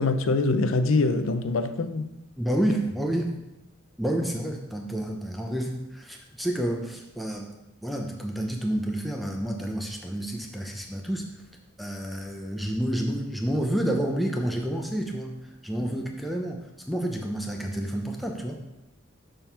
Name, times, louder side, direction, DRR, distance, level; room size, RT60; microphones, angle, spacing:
voice 1, 0.0-2.1 15.8-15.9, left 3 dB, 75° left, 0.5 m, -24 dB
voice 2, 2.4-3.3 4.0-7.5 7.8-11.3 11.8-15.4 15.6-16.6 16.9-18.6, right 1 dB, ahead, 0.7 m, -29 dB
6.9 x 3.8 x 5.5 m
head